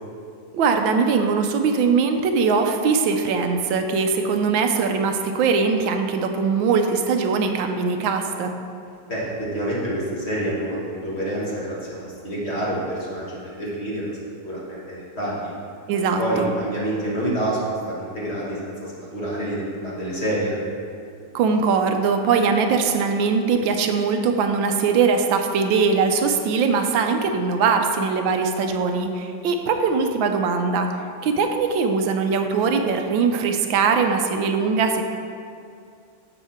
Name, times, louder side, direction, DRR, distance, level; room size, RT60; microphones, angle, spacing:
voice 1, 0.5-8.6 15.9-16.5 21.3-35.0, right 5 dB, 85° right, 5 dB, 1.4 m, -21 dB
voice 2, 9.1-14.0 14.4-15.5 16.2-20.5, right 1 dB, 35° left, -6 dB, 1.9 m, -27 dB
8.0 x 6.7 x 4.3 m, 2.4 s
omnidirectional pair, 2.1 m